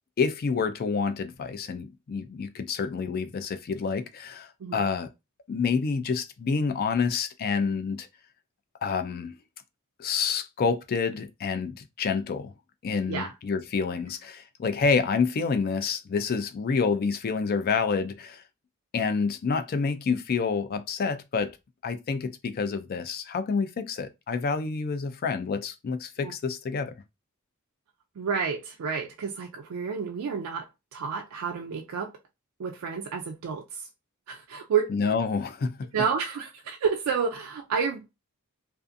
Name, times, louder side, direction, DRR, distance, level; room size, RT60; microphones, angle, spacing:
voice 1, 0.2-5.1 5.5-8.1 8.8-9.4 10.0-12.5 12.8-18.4 18.9-21.6 21.8-27.0 34.9-36.0, left 5 dB, 45° left, 0.3 m, -28 dB
voice 2, 28.2-32.1 32.6-33.9 34.3-34.9 35.9-38.1, right 6 dB, 80° right, 0.4 m, -30 dB
2.4 x 2.4 x 2.5 m
head